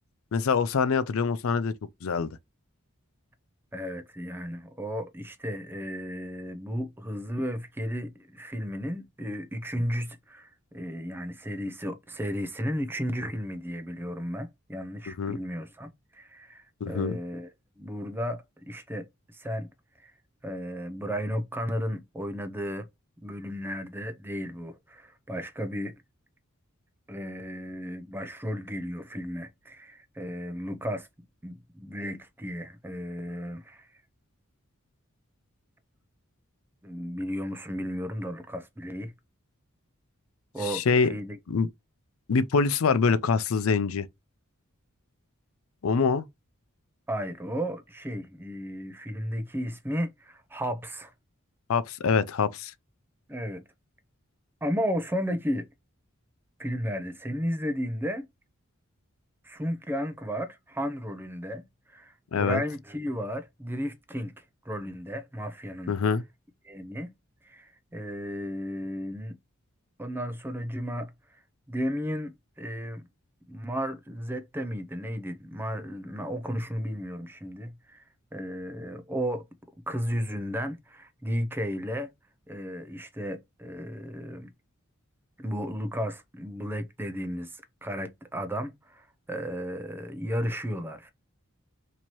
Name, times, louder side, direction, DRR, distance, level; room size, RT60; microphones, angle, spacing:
voice 1, 0.3-1.7 2.0-2.4 15.1-15.4 16.8-17.2 40.6-41.1 41.5-41.7 42.3-44.1 45.8-46.3 51.7-52.7 62.3-62.6 65.9-66.2, left 5 dB, 80° left, 0.5 m, -25 dB
voice 2, 3.7-17.5 17.8-19.1 19.3-19.7 20.0-20.1 20.4-22.9 23.2-25.9 27.1-31.1 31.4-33.9 36.8-39.1 40.5-41.4 47.1-51.1 53.3-53.6 54.6-55.7 56.6-58.3 59.4-65.9 66.6-67.1 67.4-69.4 70.0-71.1 71.7-73.0 73.5-78.0 78.3-79.4 79.9-82.1 82.5-84.5 85.4-91.1, equal, 10° right, 0.5 m, -34 dB
4.4 x 2.8 x 3.0 m
head